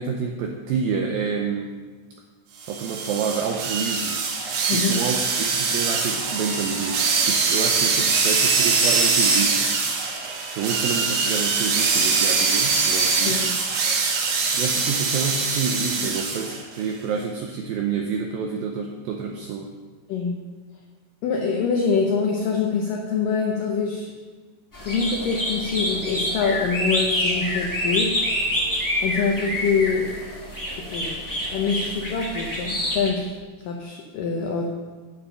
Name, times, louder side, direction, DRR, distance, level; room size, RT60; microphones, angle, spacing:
voice 1, 0.0-1.8 2.7-4.2 4.7-9.7 10.6-13.6 14.5-19.7, right 6 dB, 85° right, 2 dB, 2.0 m, -28 dB
sound 1, 2.6-16.6, right 4 dB, 70° right, 3.3 m, -23 dB
voice 2, 4.7-5.0 13.2-13.5 20.1-20.4 21.2-24.1 24.8-28.2 29.0-30.1 30.8-31.2 31.5-33.3 33.6-34.7, left 5 dB, 80° left, 0 dB, 1.9 m, -25 dB
sound 2, 24.7-33.1, equal, 30° left, 0.3 m, -27 dB
9.2 x 8.3 x 5.6 m, 1.4 s
omnidirectional pair, 5.1 m